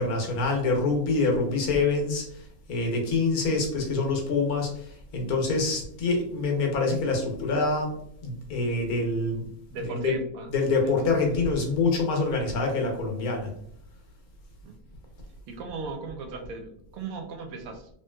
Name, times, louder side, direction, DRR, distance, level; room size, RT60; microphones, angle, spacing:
voice 1, 0.0-7.9 8.2-9.4 9.8-10.1 10.5-13.5, left 3 dB, 85° left, 2 dB, 1.3 m, -26 dB
voice 2, 9.7-10.5 10.8-10.9 14.6-14.8 15.5-17.9, right 4 dB, 80° right, 4 dB, 1.1 m, -37 dB
3.0 x 2.8 x 2.2 m, 0.67 s
omnidirectional pair, 1.5 m